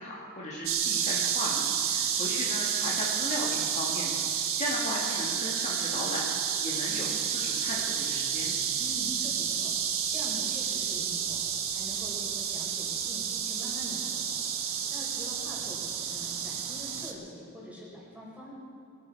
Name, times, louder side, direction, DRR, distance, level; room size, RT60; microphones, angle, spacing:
voice 1, 0.0-6.3 6.6-8.5, left 1 dB, 30° left, -4 dB, 1.9 m, -36 dB
sound 1, 0.6-17.1, right 8 dB, 65° right, 1.5 m, -30 dB
voice 2, 8.8-11.4 11.7-18.5, equal, 5° right, -6 dB, 4.6 m, -44 dB
22.5 x 12.5 x 4.7 m, 2.7 s
head